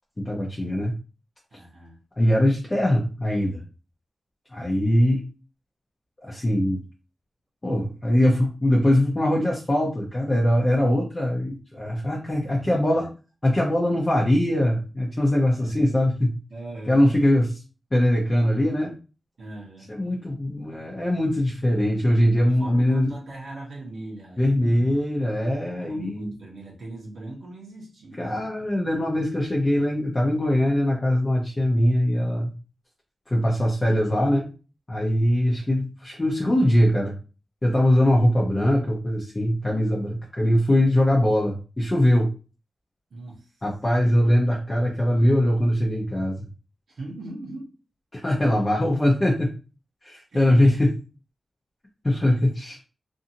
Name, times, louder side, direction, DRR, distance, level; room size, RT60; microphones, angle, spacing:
voice 1, 0.2-0.9 2.2-3.6 4.5-5.3 6.2-6.8 7.6-13.1 13.4-16.3 16.9-17.6 17.9-18.9 19.9-23.1 24.4-26.3 28.2-32.5 33.3-34.5 34.9-37.1 37.6-42.3 43.6-46.5 48.1-49.5 50.0-50.9 52.0-52.8, left 1 dB, 25° left, -3 dB, 0.6 m, -22 dB
voice 2, 1.5-2.0 12.5-13.1 15.5-16.0 16.5-17.0 19.4-19.9 22.4-24.9 25.7-28.7 43.1-43.6 46.9-47.7 50.3-50.9, right 2 dB, 75° right, -5 dB, 0.9 m, -40 dB
2.6 x 2.5 x 2.7 m, 0.34 s
wide cardioid pair, 90°, 0 cm